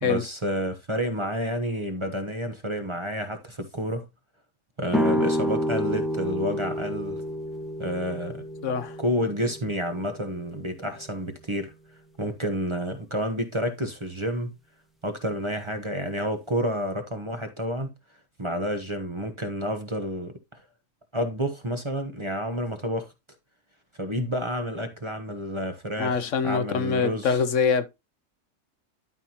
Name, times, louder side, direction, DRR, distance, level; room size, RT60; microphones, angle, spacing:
voice 1, 0.0-4.0 4.8-7.2 7.8-8.4 9.0-11.7 12.2-14.5 15.0-17.9 18.4-20.6 21.1-23.1 24.0-27.4, equal, 25° right, 1.0 m, -29 dB
sound 1, 4.9-10.7, equal, ahead, 1.0 m, -29 dB
voice 2, 8.6-9.0 26.0-27.9, left 6 dB, 70° left, 1.1 m, -24 dB
12.0 x 5.5 x 2.9 m
omnidirectional pair, 1.4 m